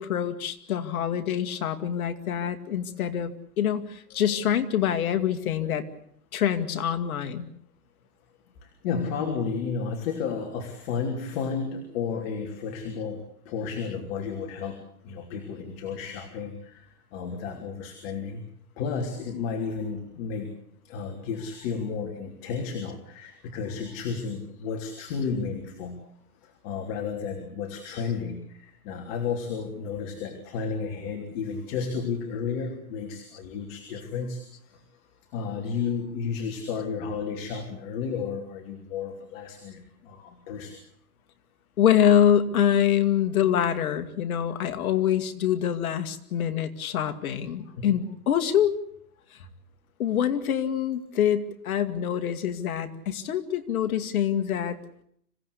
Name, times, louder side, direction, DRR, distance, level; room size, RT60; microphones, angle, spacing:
voice 1, 0.0-5.8 6.3-7.5 41.8-48.8 50.0-54.8, left 9 dB, 65° left, 9 dB, 2.3 m, -25 dB
voice 2, 8.6-14.8 15.0-18.4 18.8-20.5 20.8-26.0 26.4-34.8 35.3-40.8 47.7-47.9, left 5 dB, 40° left, 3 dB, 3.3 m, -32 dB
26.0 x 17.0 x 8.3 m, 0.67 s
hypercardioid pair, 150°, 47 cm